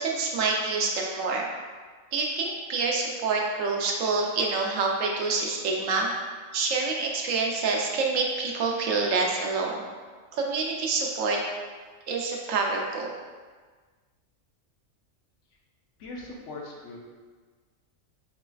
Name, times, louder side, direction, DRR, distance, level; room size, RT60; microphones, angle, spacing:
voice 1, 0.0-1.5 2.1-6.1 6.5-9.8 10.3-11.4 12.1-13.1, right 4 dB, 85° right, 0 dB, 1.0 m, -27 dB
voice 2, 16.0-17.0, left 2 dB, 70° left, -2 dB, 1.0 m, -40 dB
4.1 x 3.9 x 2.3 m, 1.5 s
omnidirectional pair, 1.3 m